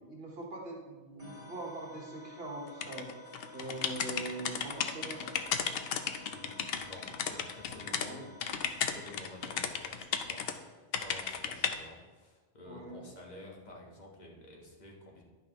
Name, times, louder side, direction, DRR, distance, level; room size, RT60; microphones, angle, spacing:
voice 1, 0.0-3.1 3.5-5.5 8.1-8.3 12.6-13.0, right 2 dB, 65° right, -1 dB, 1.6 m, -42 dB
sound 1, 1.2-10.6, left 2 dB, 30° right, 2.1 m, -53 dB
sound 2, 2.8-8.1 8.4-10.5 10.9-11.8, left 7 dB, 65° left, 0.7 m, -34 dB
voice 2, 6.2-15.2, left 1 dB, 40° left, -2 dB, 1.4 m, -51 dB
10.5 x 5.6 x 3.0 m, 1.3 s
omnidirectional pair, 1.1 m